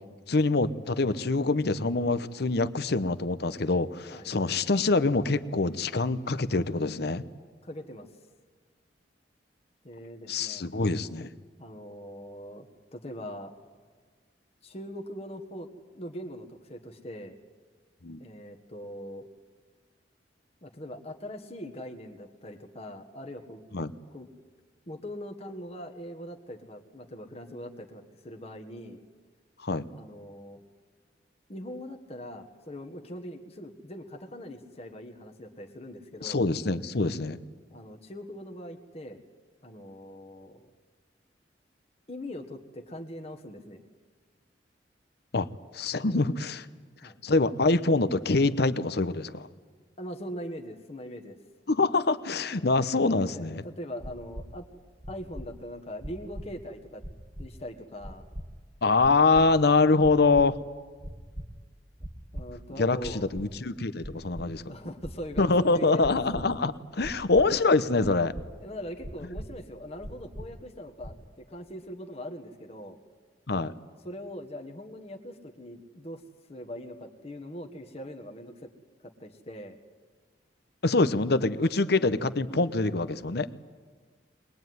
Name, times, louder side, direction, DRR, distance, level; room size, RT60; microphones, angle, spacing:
voice 1, 0.3-7.2 10.3-11.3 18.0-18.2 23.7-23.9 29.6-29.8 36.2-37.4 45.3-45.5 45.7-46.7 47.2-49.5 51.7-53.6 58.8-60.6 62.8-64.6 65.4-68.3 73.5-73.7 80.8-83.5, left 3 dB, 60° left, 14 dB, 0.9 m, -25 dB
voice 2, 7.6-8.1 9.8-10.6 11.6-12.7 12.9-13.5 14.6-15.7 15.9-17.4 18.2-19.3 20.6-23.6 24.1-24.3 24.9-29.0 29.9-30.6 31.5-36.4 37.7-39.2 39.6-40.6 42.1-43.8 47.0-47.2 50.0-51.4 53.3-54.6 55.1-57.0 57.4-58.3 62.3-63.2 64.6-66.2 68.6-73.0 74.0-76.2 76.5-78.7 79.2-79.8, equal, 35° left, 4 dB, 1.5 m, -41 dB
sound 1, 54.0-54.5 55.0-55.5 56.0-56.4 57.0-57.5 58.0-58.4 59.0-59.4 60.0-60.4 61.0-61.5 62.0-62.4 63.0-63.5 64.0-64.5 65.0-65.4 66.0-66.4 67.0-67.5 68.0-68.4 69.0-69.4 70.0-70.4 71.0-71.3, equal, 25° right, 1.8 m, -39 dB
22.0 x 21.0 x 9.5 m, 1.5 s
head